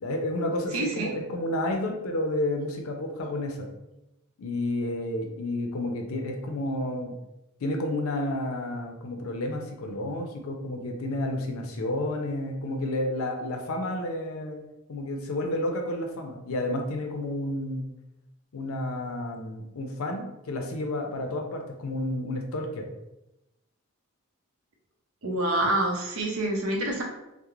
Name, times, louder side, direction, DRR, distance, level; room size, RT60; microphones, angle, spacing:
voice 1, 0.0-3.7 4.4-7.2 7.6-14.6 14.9-17.9 18.5-22.9, left 1 dB, 75° left, 3 dB, 0.4 m, -31 dB
voice 2, 0.7-1.1 25.2-27.0, right 1 dB, 75° right, 0 dB, 0.6 m, -27 dB
2.4 x 2.0 x 2.9 m, 0.93 s
head